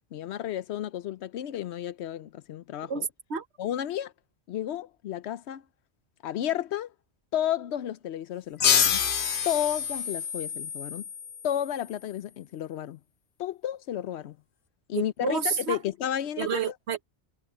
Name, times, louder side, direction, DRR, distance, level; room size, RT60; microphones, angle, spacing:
voice 1, 0.1-3.0 3.6-4.1 4.5-5.6 6.2-6.9 7.3-9.0 9.4-11.0 11.4-13.0 13.4-14.4 14.9-16.7, left 11 dB, 85° left, 0.9 m, -32 dB
voice 2, 2.9-3.4 14.9-15.8 16.4-17.0, right 7 dB, 85° right, 1.3 m, -30 dB
sound 1, 8.6-11.8, left 7 dB, 55° left, 0.9 m, -27 dB
omnidirectional pair, 1.1 m